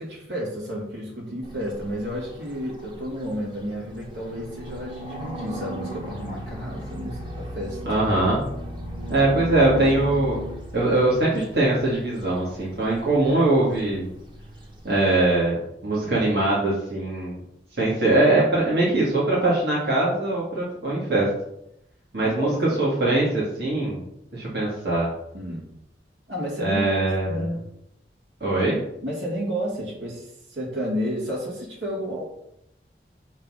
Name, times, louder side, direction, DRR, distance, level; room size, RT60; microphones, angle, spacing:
voice 1, 0.0-7.8 22.2-22.9 25.3-25.6 26.3-27.0 27.2-27.6 29.0-32.2, equal, 80° right, -4 dB, 2.7 m, -31 dB
sound 1, 1.4-15.2, equal, 25° right, 1.1 m, -37 dB
voice 2, 7.8-8.4 9.1-10.4 10.7-14.1 14.8-17.4 17.8-21.3 22.1-24.0 24.3-25.1 26.6-27.5 28.4-28.8, right 2 dB, 65° right, -7 dB, 2.0 m, -22 dB
6.0 x 4.4 x 5.6 m, 0.78 s
head